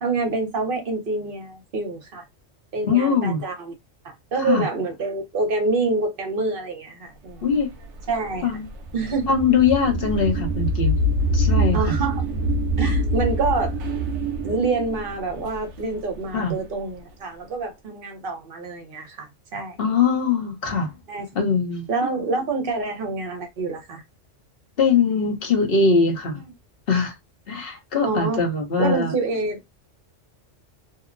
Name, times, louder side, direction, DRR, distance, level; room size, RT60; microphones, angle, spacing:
voice 1, 0.0-2.2 2.7-3.7 4.0-7.5 8.1-8.5 8.9-9.3 11.7-12.2 12.8-13.7 14.4-19.8 21.1-21.3 21.9-24.0 28.0-28.4 28.8-29.6, right 3 dB, 50° right, 0.9 m, -26 dB
voice 2, 2.8-3.4 4.4-4.7 7.4-7.7 8.4-8.7 9.3-11.0 11.3-12.0 16.3-16.5 19.8-20.9 21.3-21.9 24.8-26.4 26.9-27.1 27.5-29.1, left 5 dB, 55° left, 1.0 m, -21 dB
sound 1, 7.5-16.5, right 1 dB, 70° right, 0.9 m, -25 dB
2.8 x 2.0 x 2.5 m
omnidirectional pair, 1.3 m